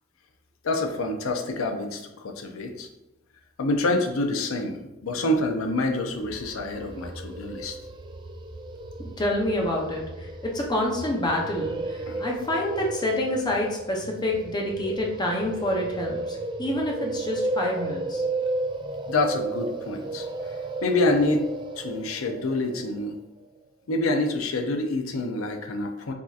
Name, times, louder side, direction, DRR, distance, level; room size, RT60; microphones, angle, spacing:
voice 1, 0.6-2.9 3.6-7.8 12.1-12.2 19.1-20.3 20.8-23.2 23.9-26.1, left 2 dB, 90° left, 4 dB, 0.5 m, -27 dB
sound 1, 6.1-23.1, right 2 dB, 25° right, 0.3 m, -34 dB
voice 2, 9.0-18.2, left 1 dB, 20° left, -1 dB, 0.7 m, -28 dB
6.0 x 2.8 x 2.4 m, 0.97 s
head